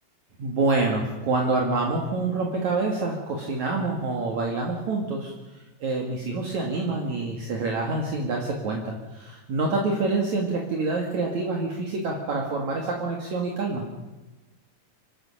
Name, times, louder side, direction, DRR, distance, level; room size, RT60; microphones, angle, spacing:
voice 1, 0.4-5.3 5.8-13.8, right 3 dB, 60° right, 0 dB, 3.4 m, -27 dB
25.5 x 15.0 x 7.5 m, 1.1 s
omnidirectional pair, 4.0 m